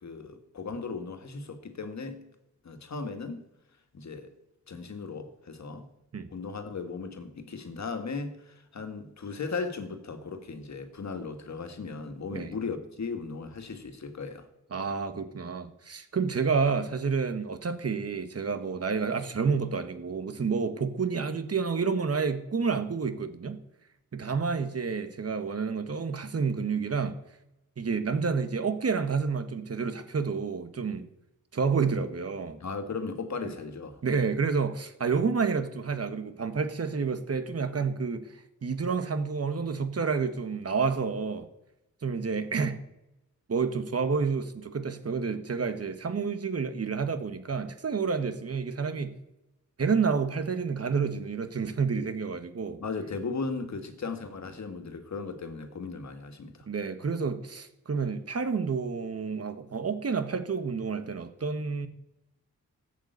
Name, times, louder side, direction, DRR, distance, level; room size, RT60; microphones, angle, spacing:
voice 1, 0.0-2.2 2.6-3.5 3.9-4.3 4.7-5.9 6.3-14.5 32.6-34.0 52.8-56.7, left 4 dB, 65° left, 1.9 m, -37 dB
voice 2, 14.7-23.6 24.1-27.1 27.8-31.1 31.5-32.6 34.0-38.3 38.6-41.5 42.0-42.8 43.5-49.2 49.8-52.8 56.7-61.9, right 5 dB, 50° right, 1.5 m, -29 dB
14.0 x 8.2 x 8.0 m
wide cardioid pair, 90°, 30 cm